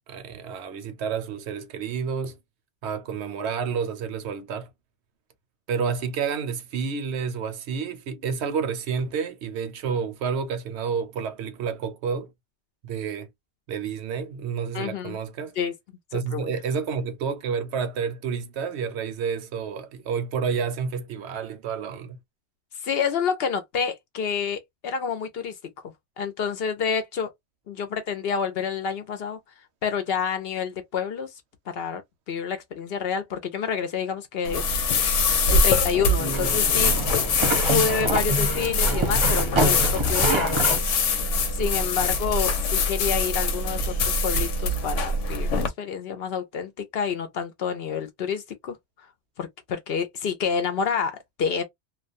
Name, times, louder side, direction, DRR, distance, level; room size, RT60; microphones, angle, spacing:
voice 1, 0.1-2.4 2.8-4.7 5.7-12.3 12.8-13.3 13.7-15.5 16.1-22.2, right 6 dB, 70° right, 0.8 m, -30 dB
voice 2, 14.7-15.2 15.6-15.7 16.1-16.5 22.8-25.6 26.2-27.3 27.7-29.4 29.8-31.3 31.7-32.0 32.3-34.6 34.9-35.2 35.5-36.9 37.7-43.9 44.2-48.8 49.4-51.6, left 6 dB, 65° left, 0.7 m, -28 dB
sound 1, 34.4-45.7, left 3 dB, 90° left, 1.0 m, -23 dB
sound 2, 36.2-40.8, right 2 dB, 30° right, 0.6 m, -27 dB
2.3 x 2.1 x 2.4 m
omnidirectional pair, 1.2 m